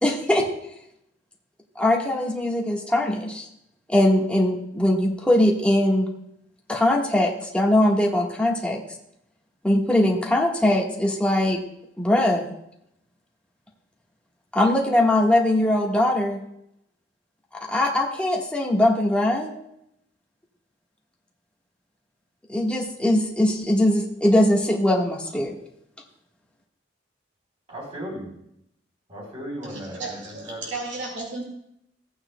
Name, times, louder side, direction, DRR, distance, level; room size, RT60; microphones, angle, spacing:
voice 1, 0.0-0.5 1.7-3.5 3.9-6.1 6.7-8.8 9.6-11.6 12.0-12.4 14.5-16.4 17.7-19.5 22.5-25.5, left 1 dB, 5° left, -2 dB, 1.4 m, -21 dB
voice 2, 27.7-28.3 29.1-30.6, equal, 35° right, -2 dB, 3.8 m, -36 dB
voice 3, 29.6-31.4, right 3 dB, 85° right, -1 dB, 2.0 m, -34 dB
15.0 x 8.8 x 2.2 m, 0.77 s
head